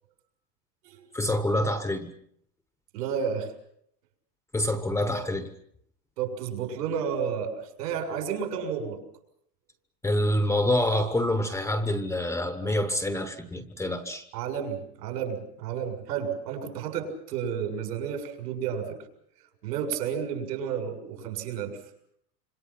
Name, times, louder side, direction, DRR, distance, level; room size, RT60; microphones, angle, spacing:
voice 1, 1.1-2.1 4.5-5.5 10.0-14.2, left 1 dB, 5° left, 8 dB, 1.0 m, -26 dB
voice 2, 2.9-3.5 6.2-9.0 14.3-19.0 19.6-21.8, right 7 dB, 75° right, 5 dB, 7.0 m, -31 dB
26.5 x 26.0 x 5.9 m, 0.69 s
supercardioid pair, 160°, 49 cm